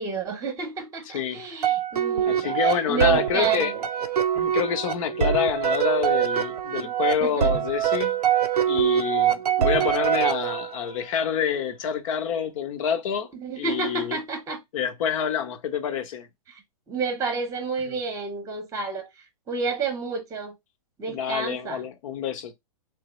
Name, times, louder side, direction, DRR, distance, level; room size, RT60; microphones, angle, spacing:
voice 1, 0.0-3.8 6.8-6.9 7.2-7.5 13.3-14.6 16.5-16.6 16.9-19.1 19.5-20.5 21.0-21.8, right 4 dB, 15° right, 1.0 m, -30 dB
voice 2, 1.1-1.4 2.3-3.7 4.3-8.2 8.7-13.3 13.6-14.2 14.7-16.3 17.9-18.0 21.1-22.5, left 8 dB, 55° left, 1.0 m, -27 dB
sound 1, 1.6-10.9, right 9 dB, 85° right, 0.6 m, -24 dB
3.2 x 2.0 x 3.0 m
hypercardioid pair, 125°, 20 cm